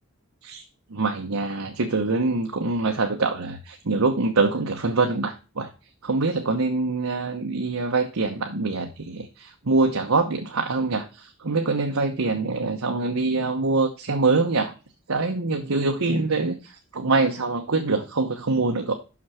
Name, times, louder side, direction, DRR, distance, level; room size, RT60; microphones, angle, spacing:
voice 1, 0.9-5.7 6.0-14.7 15.1-19.0, right 3 dB, 85° right, 4 dB, 1.0 m, -24 dB
6.2 x 6.0 x 5.6 m, 0.32 s
head